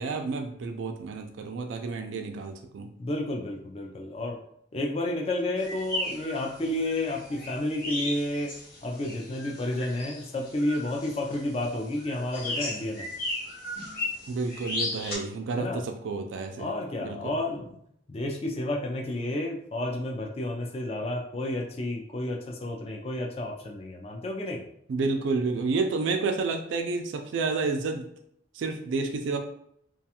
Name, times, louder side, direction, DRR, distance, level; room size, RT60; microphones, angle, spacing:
voice 1, 0.0-2.9 14.3-16.7 17.0-17.4 24.9-28.1 28.5-29.4, right 4 dB, 85° right, 5 dB, 0.3 m, -30 dB
voice 2, 3.0-4.4 4.7-8.5 8.8-13.1 15.5-15.8 16.6-17.8 18.1-24.6, left 1 dB, 30° left, 1 dB, 0.3 m, -31 dB
sound 1, 5.6-15.2, left 2 dB, 55° left, 0.9 m, -36 dB
2.4 x 2.3 x 2.8 m, 0.71 s
head